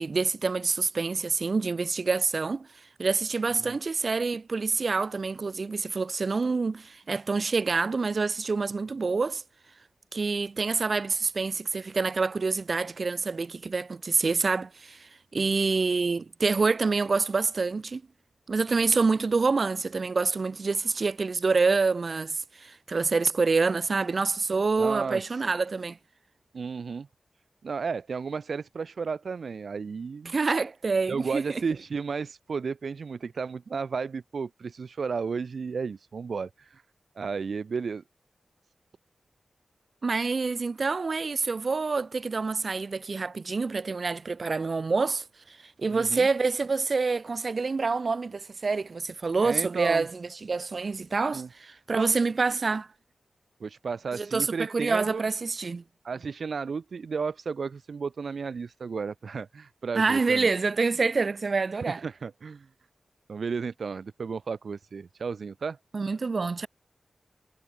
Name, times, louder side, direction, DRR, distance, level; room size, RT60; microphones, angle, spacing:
voice 1, 0.0-9.4 10.1-18.0 18.5-26.0 30.3-31.6 40.0-52.9 54.1-55.8 59.9-62.0 65.9-66.7, right 4 dB, 55° right, 5.7 m, -27 dB
voice 2, 24.8-25.2 26.5-27.1 27.6-30.3 31.1-36.8 37.2-38.0 45.9-46.3 49.4-50.1 51.3-51.5 53.6-55.2 56.0-60.5 61.9-62.7 63.3-65.8, right 5 dB, 75° right, 3.6 m, -33 dB
wide cardioid pair, 75°, 0 cm